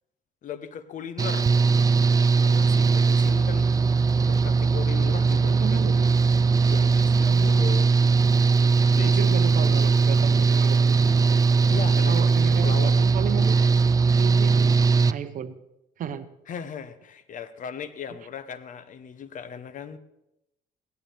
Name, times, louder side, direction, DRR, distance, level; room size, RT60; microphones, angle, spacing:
voice 1, 0.4-1.5 2.4-3.7 4.3-6.0 6.7-8.0 8.9-9.5 11.6-12.3 12.6-13.0 16.5-20.0, left 7 dB, 50° left, 12 dB, 1.0 m, -38 dB
Engine / Mechanical fan, 1.2-15.1, right 4 dB, 20° right, 0.3 m, -20 dB
voice 2, 5.5-6.1 7.3-7.7 9.0-11.4 12.1-13.6 14.2-14.8 15.1-15.6 16.0-16.3, right 9 dB, 50° right, 12 dB, 0.9 m, -34 dB
16.5 x 11.5 x 3.4 m, 0.86 s
cardioid pair, 110°, 17 cm